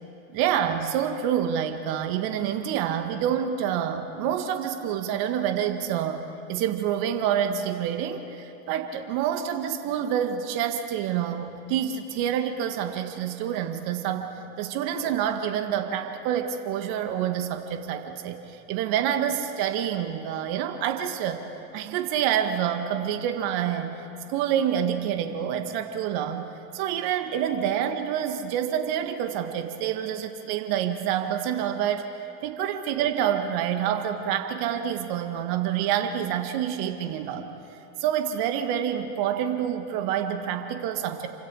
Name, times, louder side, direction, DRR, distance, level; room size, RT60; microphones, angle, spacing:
voice 1, 0.3-21.5 21.7-24.0 24.3-26.5 26.7-32.1 32.4-37.5 38.0-41.3, right 9 dB, 60° right, 6 dB, 2.0 m, -27 dB
29.0 x 25.0 x 4.9 m, 2.9 s
hypercardioid pair, 75°, 40 cm